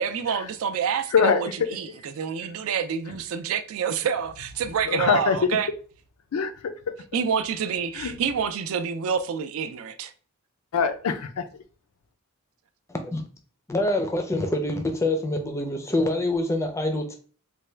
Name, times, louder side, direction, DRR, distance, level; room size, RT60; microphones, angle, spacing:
voice 1, 0.0-5.7 7.1-10.1, right 7 dB, 70° right, 0.3 m, -28 dB
voice 2, 1.1-1.5 4.9-5.4 6.3-6.7 8.0-8.1 10.7-11.4, left 6 dB, 85° left, 0.4 m, -23 dB
voice 3, 12.9-13.3 13.7-17.2, left 1 dB, 15° left, 0.4 m, -26 dB
3.3 x 2.2 x 3.2 m
head